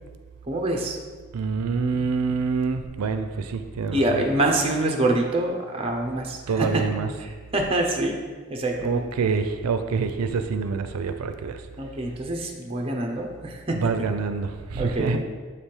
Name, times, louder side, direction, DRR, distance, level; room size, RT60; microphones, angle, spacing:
voice 1, 0.5-1.0 3.9-6.7 7.5-8.2 8.5-9.0 11.8-13.8 14.8-15.2, right 1 dB, 25° right, 1 dB, 0.6 m, -25 dB
voice 2, 1.3-4.3 6.5-7.1 8.8-11.6 13.7-15.2, right 5 dB, 90° right, 8 dB, 0.4 m, -26 dB
7.3 x 3.4 x 4.4 m, 1.5 s
head